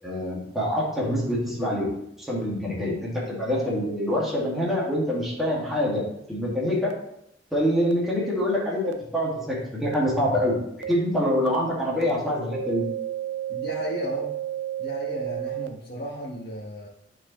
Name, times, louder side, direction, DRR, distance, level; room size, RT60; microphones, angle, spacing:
voice 1, 0.0-1.9 2.2-6.0 6.3-6.9 7.5-10.6 10.9-12.8, equal, ahead, -6 dB, 2.0 m, -25 dB
sound 1, 6.8-6.9 7.8-7.9 8.8-8.9 9.9-10.0 10.8-10.9 11.5-11.6 12.0-12.1 12.5-15.7, right 11 dB, 70° right, 0.4 m, -31 dB
voice 2, 13.5-14.3 14.8-16.9, equal, 60° left, -6 dB, 1.3 m, -34 dB
9.9 x 4.7 x 3.1 m, 0.77 s
head